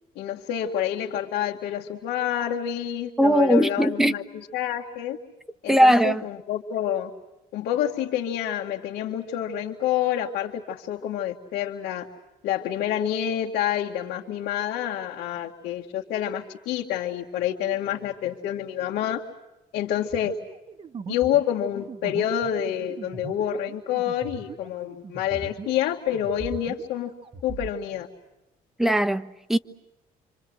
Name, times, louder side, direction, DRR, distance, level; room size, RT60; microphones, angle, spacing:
voice 1, 0.2-4.2 4.5-5.2 5.6-7.1 7.5-12.1 12.4-19.2 19.7-20.4 21.1-27.1 27.4-28.1, left 10 dB, 80° left, 2.2 m, -28 dB
voice 2, 3.2-4.2 5.7-6.2 28.8-29.6, equal, ahead, 1.2 m, -19 dB
sound 1, 20.1-25.9 26.1-27.7, right 4 dB, 30° right, 1.7 m, -40 dB
28.5 x 26.0 x 8.0 m
cardioid pair, 110°, 17 cm